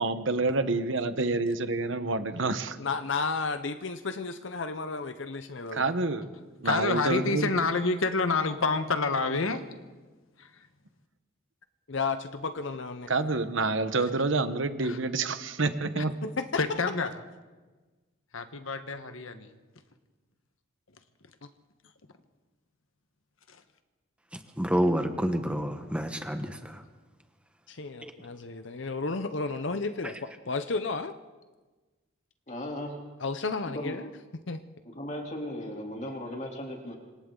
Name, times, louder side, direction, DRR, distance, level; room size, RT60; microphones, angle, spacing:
voice 1, 0.0-2.8 5.7-6.3 6.6-7.5 13.1-16.1, right 3 dB, 65° right, 10 dB, 1.2 m, -28 dB
voice 2, 2.8-5.9 11.9-13.1 16.2-16.6 27.7-30.2 30.5-31.2 33.2-34.1 34.5-34.6, left 4 dB, 60° left, 9 dB, 0.8 m, -32 dB
voice 3, 6.6-9.7 10.4-10.5 14.8-15.0 15.9-16.0 16.6-17.1 18.3-19.5 23.5-23.6, left 3 dB, 80° left, 8 dB, 1.4 m, -28 dB
voice 4, 24.3-26.8 28.0-28.1 30.0-30.1, equal, 5° right, 6 dB, 1.2 m, -29 dB
voice 5, 32.5-33.0 33.7-34.0 34.8-37.0, left 1 dB, 35° left, 0 dB, 3.2 m, -36 dB
26.5 x 26.0 x 3.9 m, 1.3 s
head